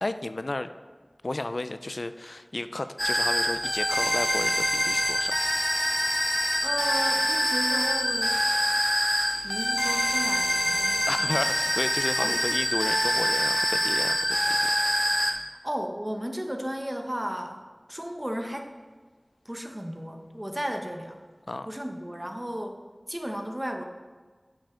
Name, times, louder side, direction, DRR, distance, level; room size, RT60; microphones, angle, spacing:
voice 1, 0.0-0.7 1.2-5.4 11.1-14.2 14.5-14.7 21.5-21.7, left 2 dB, 85° left, 11 dB, 0.3 m, -32 dB
sound 1, 3.0-15.3, equal, 25° left, 1.4 m, -25 dB
voice 2, 6.6-8.4 9.4-11.4 12.2-12.4 15.6-17.6 17.9-18.7 19.4-21.2 21.7-22.8 23.1-23.8, equal, 20° right, 4 dB, 1.0 m, -34 dB
8.8 x 5.6 x 5.0 m, 1.4 s
wide cardioid pair, 40°, 0 cm